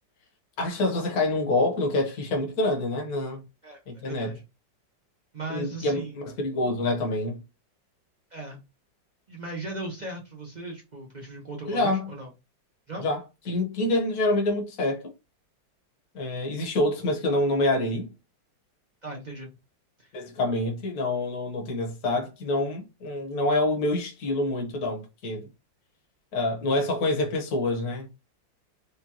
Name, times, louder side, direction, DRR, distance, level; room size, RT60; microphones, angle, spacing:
voice 1, 0.6-3.4 3.9-4.3 5.5-7.4 11.6-12.1 13.0-13.2 13.5-15.1 16.1-18.1 20.1-25.5 26.3-28.1, left 2 dB, 55° left, 1.5 m, -26 dB
voice 2, 3.6-4.4 5.3-6.1 8.3-8.6 9.3-12.3 12.9-13.1 19.0-19.5 20.0-20.1, right 2 dB, 60° right, 0.4 m, -37 dB
5.1 x 2.2 x 2.8 m
omnidirectional pair, 2.0 m